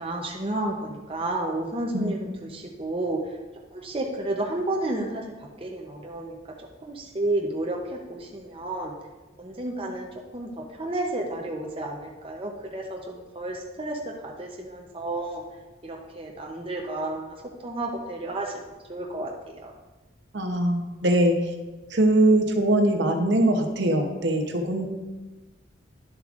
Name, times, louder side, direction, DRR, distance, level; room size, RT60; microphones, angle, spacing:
voice 1, 0.0-3.2 3.7-8.9 9.4-15.4 15.8-17.4 17.6-19.7, right 2 dB, 25° right, 0 dB, 0.7 m, -31 dB
voice 2, 20.3-21.4 21.9-24.9, right 1 dB, 55° right, 4 dB, 0.9 m, -22 dB
11.5 x 7.0 x 2.5 m, 1.2 s
head